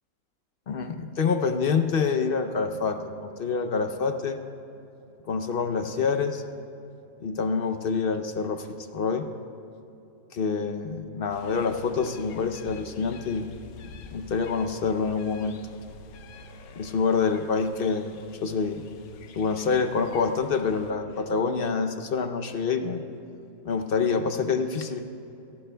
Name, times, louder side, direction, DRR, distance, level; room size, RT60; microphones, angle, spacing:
voice 1, 0.7-4.4 5.3-6.4 7.2-8.7 8.9-9.3 10.3-13.4 14.1-15.6 16.8-18.1 18.4-18.8 19.3-23.0 23.6-25.0, left 5 dB, 50° left, 7 dB, 0.7 m, -26 dB
sound 1, 11.3-20.9, left 4 dB, 85° left, 1.2 m, -47 dB
25.5 x 12.0 x 2.3 m, 2.8 s
omnidirectional pair, 1.5 m